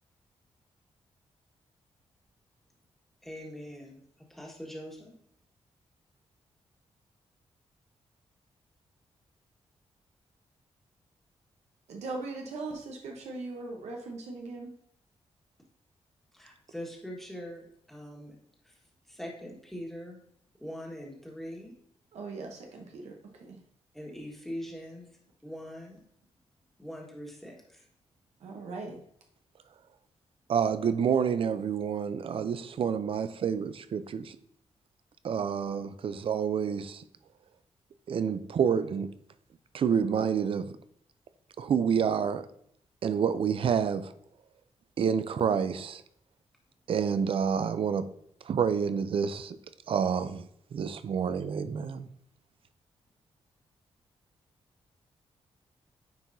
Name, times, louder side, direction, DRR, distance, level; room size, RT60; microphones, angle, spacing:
voice 1, 3.2-5.1 16.3-18.3 18.6-20.2 20.6-21.7 23.9-25.1 25.4-26.0 26.8-27.9, equal, 5° left, 1.6 m, -42 dB
voice 2, 11.9-14.7 22.1-23.6 28.4-29.0, right 3 dB, 85° right, 0.9 m, -40 dB
voice 3, 30.5-34.4 35.2-37.0 38.1-39.1 39.7-40.7 41.6-42.5 43.0-44.1 45.0-46.0 46.9-48.1 48.5-49.6 49.9-52.1, right 7 dB, 55° right, 0.4 m, -28 dB
9.4 x 4.6 x 2.7 m
wide cardioid pair, 115°, 11 cm